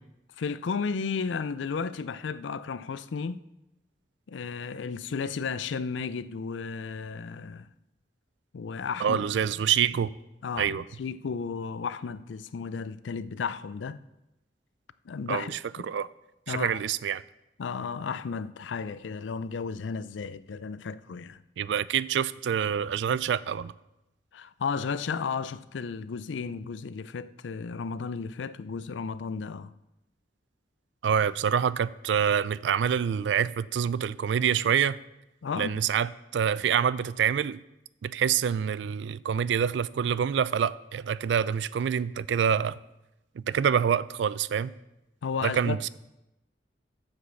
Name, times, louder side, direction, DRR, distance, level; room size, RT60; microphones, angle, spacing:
voice 1, 0.4-3.4 4.3-7.7 8.5-9.6 10.4-14.0 15.1-15.5 16.5-16.8 17.6-21.4 24.3-29.7 35.4-35.8 45.2-45.9, left 5 dB, 85° left, 0.4 m, -33 dB
voice 2, 9.0-10.1 10.6-10.8 15.3-15.6 15.9-16.1 16.5-17.2 21.6-23.7 31.0-35.0 35.6-37.6 38.0-42.8 43.4-44.7 45.4-45.9, right 8 dB, 75° right, 0.3 m, -26 dB
9.9 x 5.3 x 6.9 m
head